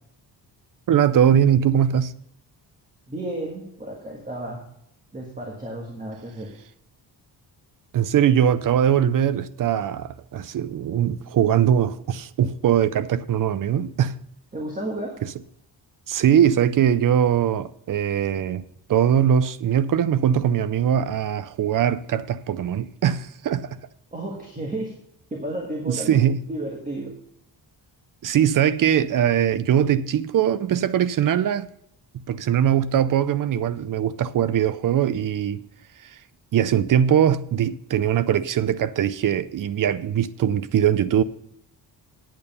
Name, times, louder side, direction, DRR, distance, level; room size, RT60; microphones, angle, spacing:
voice 1, 0.9-2.2 7.9-14.2 16.1-18.6 18.9-23.8 25.9-26.4 28.2-31.7 32.3-35.6 36.5-41.2, right 9 dB, 50° right, 0.5 m, -21 dB
voice 2, 3.1-4.6 5.1-6.5 14.5-15.2 24.1-24.9 25.3-26.2 26.5-27.1, right 1 dB, 20° right, 1.5 m, -32 dB
9.0 x 8.4 x 5.4 m
wide cardioid pair, 180°, 43 cm